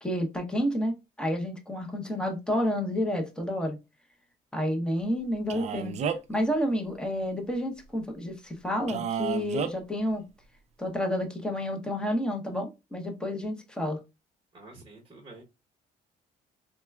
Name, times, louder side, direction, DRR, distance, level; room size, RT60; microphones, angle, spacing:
voice 1, 0.0-3.8 4.5-6.0 6.3-10.3 10.8-14.0, equal, 5° left, 0.7 m, -30 dB
Male speech man speaking, 5.5-6.4 8.9-9.7, right 7 dB, 40° right, 0.4 m, -31 dB
voice 2, 14.5-15.4, right 2 dB, 25° right, 0.9 m, -48 dB
4.2 x 2.2 x 2.2 m
cardioid pair, 110°, 17 cm